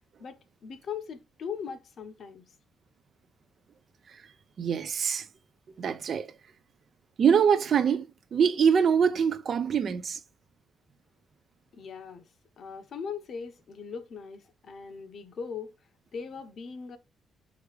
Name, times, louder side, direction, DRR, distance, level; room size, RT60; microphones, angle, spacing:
voice 1, 0.2-2.5 11.7-12.3 12.6-15.7 16.1-17.0, left 6 dB, 40° left, 0.7 m, -40 dB
voice 2, 4.6-5.3 5.8-6.3 7.2-10.2, right 7 dB, 40° right, 0.4 m, -24 dB
4.8 x 3.3 x 3.2 m
cardioid pair, 170°, 0 cm